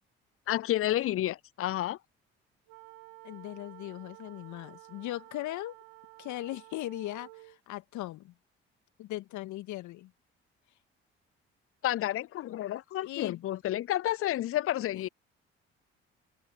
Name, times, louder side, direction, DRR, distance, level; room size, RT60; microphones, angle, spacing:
voice 1, 0.5-2.0 11.8-15.1, left 13 dB, 45° left, 0.5 m, -30 dB
sound 1, 2.7-7.6, right 26 dB, 75° right, 3.3 m, -52 dB
voice 2, 3.2-5.8 6.2-8.3 9.0-10.1 13.0-13.4 14.9-15.0, left 16 dB, 65° left, 2.1 m, -39 dB
open air
hypercardioid pair, 50°, 32 cm